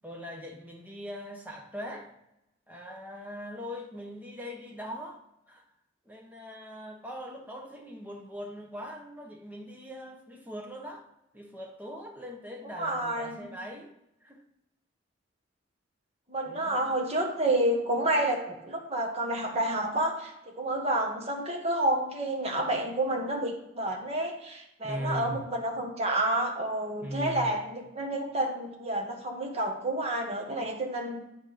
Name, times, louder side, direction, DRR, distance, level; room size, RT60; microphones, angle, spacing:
voice 1, 0.0-2.1 2.7-5.2 5.5-5.6 6.0-11.1 11.3-13.9 14.2-14.4 16.4-16.9 24.8-25.4 27.0-27.5, equal, 10° right, 0 dB, 1.2 m, -40 dB
voice 2, 12.8-13.5 16.3-31.2, right 1 dB, 35° right, 0 dB, 1.6 m, -29 dB
10.0 x 4.5 x 5.2 m, 0.86 s
head